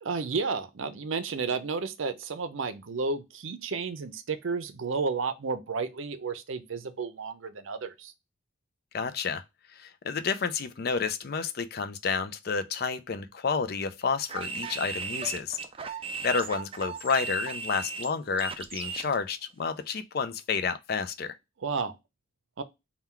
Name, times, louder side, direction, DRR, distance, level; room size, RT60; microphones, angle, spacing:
voice 1, 0.0-8.1 21.6-21.9 22.6-22.7, right 4 dB, 75° right, 0.5 m, -32 dB
voice 2, 8.9-9.4 9.7-15.6 16.2-21.4, left 5 dB, 50° left, 0.4 m, -30 dB
sound 1, 14.3-19.1, right 4 dB, 25° right, 0.3 m, -36 dB
3.7 x 2.3 x 4.3 m
head